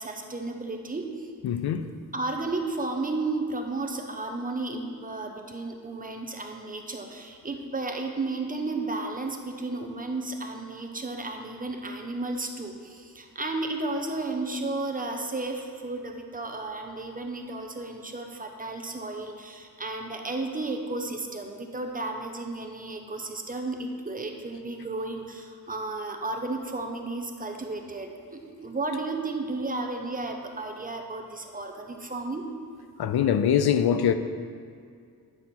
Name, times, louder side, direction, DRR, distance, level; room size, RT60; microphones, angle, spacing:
voice 1, 0.0-1.3 2.1-32.5, right 2 dB, 25° right, 0.6 m, -33 dB
voice 2, 1.4-1.9 33.0-34.1, left 9 dB, 85° left, 0.5 m, -23 dB
9.0 x 4.2 x 6.0 m
wide cardioid pair, 160°, 37 cm